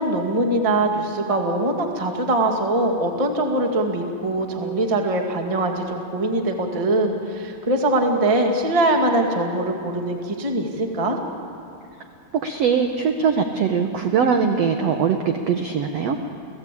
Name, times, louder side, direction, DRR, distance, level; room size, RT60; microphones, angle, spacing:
voice 1, 0.0-11.2, right 2 dB, 15° right, 2 dB, 1.2 m, -22 dB
voice 2, 12.3-16.2, right 6 dB, 65° right, 5 dB, 1.6 m, -21 dB
29.5 x 17.0 x 8.5 m, 2.6 s
omnidirectional pair, 4.1 m